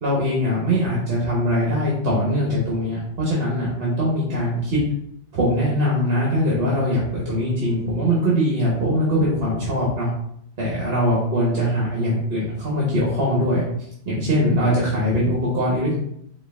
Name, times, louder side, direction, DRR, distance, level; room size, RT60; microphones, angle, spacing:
voice 1, 0.0-4.8 5.3-10.1 10.6-13.6 14.0-16.0, equal, 55° right, -6 dB, 1.3 m, -22 dB
4.8 x 2.6 x 3.5 m, 0.71 s
omnidirectional pair, 1.2 m